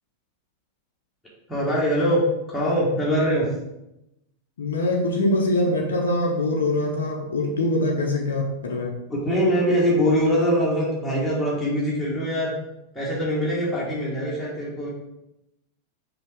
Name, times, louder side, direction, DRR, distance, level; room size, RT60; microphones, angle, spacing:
voice 1, 1.5-3.5 9.1-12.5 12.9-14.9, equal, ahead, -8 dB, 1.6 m, -23 dB
voice 2, 4.6-9.0, left 1 dB, 65° left, 1 dB, 0.7 m, -23 dB
5.1 x 2.9 x 3.5 m, 0.87 s
figure-of-eight pair, 90°, 0 cm